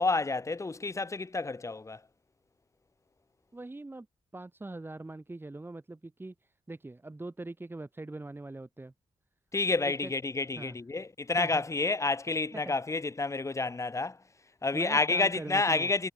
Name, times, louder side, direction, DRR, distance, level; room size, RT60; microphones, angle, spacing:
voice 1, 0.0-2.0 9.5-14.2 14.6-16.1, left 3 dB, 25° left, 2.3 m, -29 dB
voice 2, 3.5-4.1 4.3-8.9 9.8-10.1 10.6-10.7 11.3-11.6 12.5-12.7 14.7-15.9, right 2 dB, 20° right, 3.3 m, -42 dB
cardioid pair, 95°, 12 cm